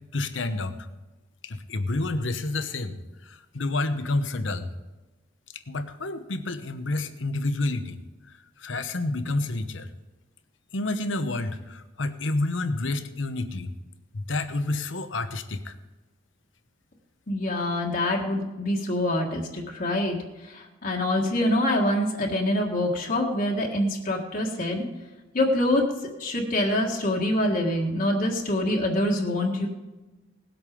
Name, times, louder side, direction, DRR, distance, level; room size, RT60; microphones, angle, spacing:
voice 1, 0.1-0.7 1.4-3.0 3.2-4.7 5.5-8.0 8.6-9.9 10.7-13.7 14.1-15.7, left 2 dB, 80° left, 10 dB, 1.0 m, -29 dB
voice 2, 17.3-20.2 20.4-24.8 25.3-25.9 26.2-29.7, left 1 dB, 50° left, -1 dB, 1.6 m, -25 dB
19.0 x 8.1 x 5.1 m, 1.1 s
head